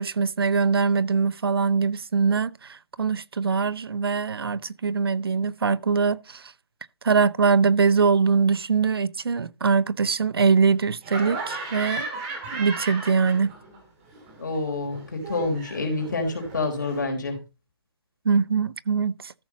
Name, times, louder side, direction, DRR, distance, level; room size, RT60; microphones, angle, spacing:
voice 1, 0.0-6.4 7.0-12.1 12.5-13.5 18.2-19.3, right 5 dB, 65° right, 0.7 m, -22 dB
Laughter, 11.0-13.8 14.1-17.0, right 2 dB, 15° right, 2.0 m, -35 dB
voice 2, 14.4-17.4, left 3 dB, 45° left, 4.0 m, -27 dB
14.0 x 6.2 x 4.1 m
hypercardioid pair, 170°, 13 cm